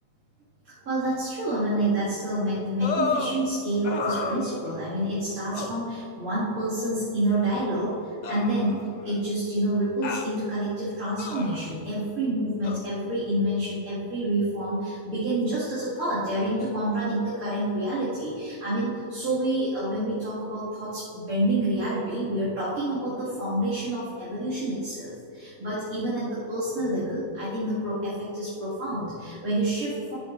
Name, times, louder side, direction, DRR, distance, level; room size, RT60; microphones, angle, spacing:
voice 1, 0.6-30.2, right 1 dB, 90° right, -12 dB, 2.9 m, -28 dB
sound 1, 2.8-3.4 3.8-4.9 5.5-5.8 6.8-6.9 8.2-9.1 10.0-10.3 11.2-11.7 12.6-12.8, left 4 dB, 55° left, 0.4 m, -31 dB
11.5 x 9.0 x 2.6 m, 2.9 s
omnidirectional pair, 1.4 m